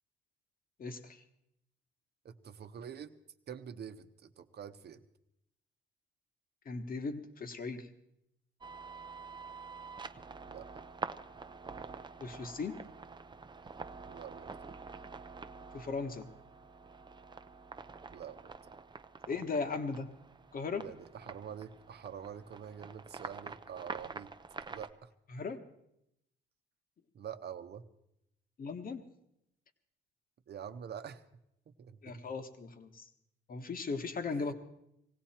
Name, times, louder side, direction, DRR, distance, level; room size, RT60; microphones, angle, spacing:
voice 1, 0.8-1.2 6.6-7.9 12.2-12.8 15.7-16.3 19.3-20.1 20.5-20.9 25.3-25.6 28.6-29.1 32.0-33.1 33.5-34.5, left 4 dB, 45° left, 8 dB, 1.5 m, -37 dB
voice 2, 2.2-3.1 3.5-5.0 10.5-10.7 14.1-14.5 18.1-18.4 20.8-24.3 24.7-25.1 27.1-27.8 30.5-31.2 31.8-32.3 34.3-34.5, right 8 dB, 55° right, 9 dB, 1.0 m, -46 dB
sound 1, 8.6-24.9, right 4 dB, 25° right, 0.6 m, -47 dB
19.0 x 16.5 x 4.4 m, 0.81 s
cardioid pair, 90°, 20 cm